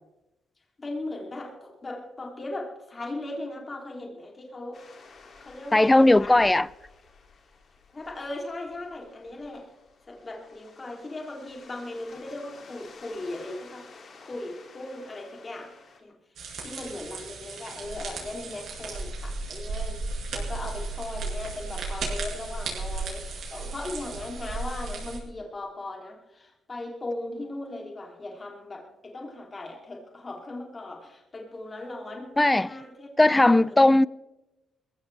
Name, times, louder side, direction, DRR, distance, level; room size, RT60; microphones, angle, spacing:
voice 1, 0.8-4.8 5.4-6.5 7.9-9.7 10.1-13.9 14.2-15.7 16.0-16.2 16.6-33.1 33.3-33.9, left 2 dB, 30° left, 2.9 m, -38 dB
sound 1, 4.7-16.0, left 4 dB, 50° left, 2.7 m, -52 dB
voice 2, 5.7-6.7 32.4-32.7 33.2-34.1, left 2 dB, 15° left, 0.4 m, -18 dB
sound 2, 16.4-25.2, right 3 dB, 65° right, 5.3 m, -35 dB
21.0 x 15.5 x 3.4 m
cardioid pair, 90°, 0 cm